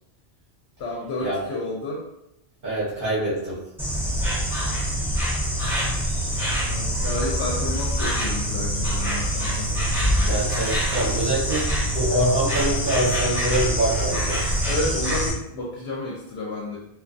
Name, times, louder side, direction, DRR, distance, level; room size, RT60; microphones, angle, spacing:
voice 1, 0.8-2.0 6.7-9.7 14.7-16.8, left 2 dB, 75° left, -4 dB, 0.8 m, -31 dB
voice 2, 2.6-3.5 10.3-14.4, right 1 dB, 55° right, -9 dB, 1.0 m, -25 dB
Insect, 3.8-15.3, equal, ahead, 0.7 m, -25 dB
2.5 x 2.3 x 2.4 m, 0.84 s
omnidirectional pair, 1.1 m